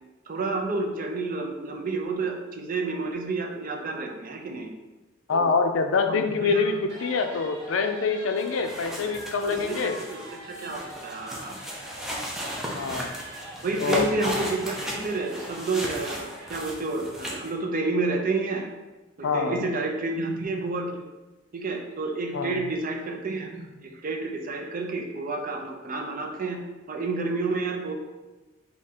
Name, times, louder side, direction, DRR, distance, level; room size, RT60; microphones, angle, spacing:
voice 1, 0.3-4.7 5.3-5.5 6.1-6.8 9.4-11.6 13.6-18.7 19.2-20.9 21.5-26.6 26.9-27.9, right 3 dB, 45° right, 3 dB, 0.5 m, -30 dB
voice 2, 5.3-10.0 12.7-13.1 13.8-14.1 19.2-19.6 22.3-22.6, left 4 dB, 85° left, 7 dB, 0.4 m, -25 dB
sound 1, 6.9-16.5, right 1 dB, 70° right, 1.2 m, -44 dB
sound 2, 8.4-17.5, equal, ahead, 0.6 m, -35 dB
3.6 x 2.8 x 4.2 m, 1.2 s
head